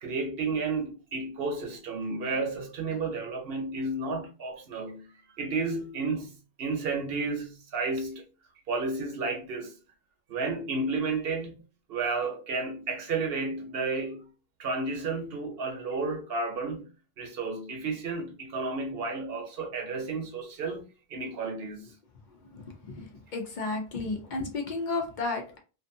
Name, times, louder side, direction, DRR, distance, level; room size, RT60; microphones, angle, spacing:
voice 1, 0.0-5.1 5.3-8.2 8.7-9.7 10.3-11.6 11.9-14.3 14.6-16.9 17.2-21.9, right 3 dB, 70° right, 0.9 m, -32 dB
voice 2, 23.3-25.6, left 3 dB, 55° left, 0.7 m, -32 dB
2.5 x 2.5 x 2.6 m
omnidirectional pair, 1.0 m